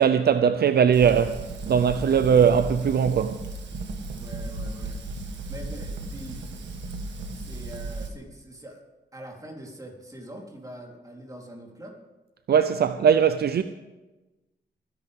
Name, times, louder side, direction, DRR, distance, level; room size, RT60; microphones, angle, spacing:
voice 1, 0.0-3.4 12.5-13.6, right 7 dB, 65° right, 0.6 m, -20 dB
Fire, 0.9-8.1, right 2 dB, 85° right, 1.6 m, -35 dB
voice 2, 4.1-5.0 5.5-6.5 7.3-8.8 9.1-12.0, right 1 dB, 20° right, 3.8 m, -43 dB
25.0 x 10.5 x 3.7 m
cardioid pair, 95°, 18 cm